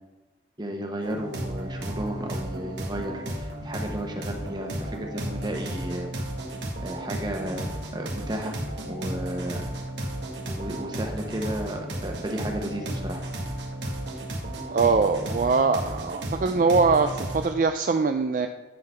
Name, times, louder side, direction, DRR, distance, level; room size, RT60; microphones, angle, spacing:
voice 1, 0.6-6.1 6.8-8.5 8.9-9.7 10.5-13.2, right 1 dB, 25° right, 2 dB, 1.0 m, -33 dB
sound 1, 1.0-17.5, right 1 dB, 80° right, 1.5 m, -34 dB
voice 2, 14.7-18.5, right 4 dB, 45° right, 7 dB, 0.3 m, -22 dB
10.5 x 3.9 x 5.6 m, 1.3 s
head